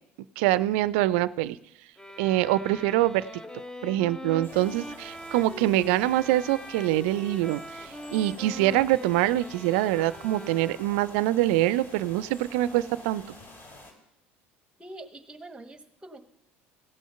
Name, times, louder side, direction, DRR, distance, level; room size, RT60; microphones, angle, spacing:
voice 1, 0.4-1.6 2.2-3.3 3.8-13.2, right 15 dB, 70° right, 18 dB, 0.4 m, -24 dB
sound 1, 2.0-11.2, left 1 dB, 10° left, 0.7 m, -42 dB
sound 2, 4.4-13.9, left 1 dB, 35° left, 3.3 m, -49 dB
voice 2, 14.8-16.2, right 2 dB, 15° right, 10 dB, 1.3 m, -44 dB
16.5 x 6.3 x 5.6 m, 0.83 s
hypercardioid pair, 70°, 6 cm